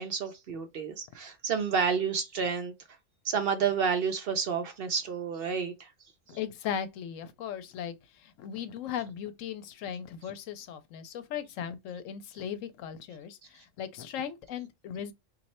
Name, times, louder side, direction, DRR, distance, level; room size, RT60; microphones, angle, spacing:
voice 1, 0.0-2.7 3.2-5.9, right 6 dB, 60° right, 0.6 m, -30 dB
voice 2, 6.3-15.1, left 8 dB, 85° left, 1.0 m, -38 dB
3.1 x 2.5 x 4.2 m
omnidirectional pair, 1.3 m